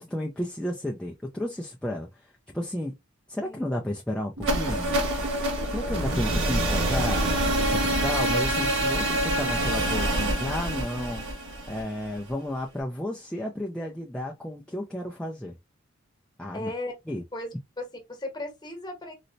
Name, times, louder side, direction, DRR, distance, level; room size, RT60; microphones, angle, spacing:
voice 1, 0.0-3.0 3.3-5.0 5.7-7.3 7.7-11.2 11.7-15.6 16.4-16.7 17.1-17.2, left 1 dB, 5° left, 0.4 m, -32 dB
voice 2, 3.4-3.8 16.5-16.9 17.3-19.1, left 1 dB, 20° left, 1.1 m, -36 dB
sound 1, 4.4-12.3, right 1 dB, 75° right, 1.5 m, -26 dB
4.0 x 2.1 x 2.5 m
head